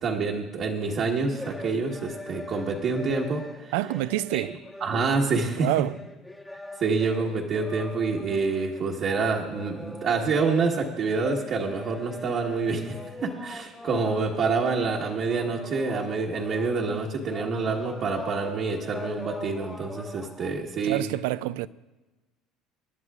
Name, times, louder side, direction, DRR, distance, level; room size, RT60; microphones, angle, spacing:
voice 1, 0.0-3.7 4.3-4.4 4.8-5.7 6.8-21.0, right 4 dB, 45° right, 1.4 m, -27 dB
sound 1, 0.9-20.6, left 2 dB, 10° left, 1.2 m, -41 dB
voice 2, 3.7-4.6 5.6-6.0 20.8-21.7, right 16 dB, 90° right, 0.3 m, -27 dB
28.0 x 11.0 x 2.5 m
cardioid pair, 125°, 0 cm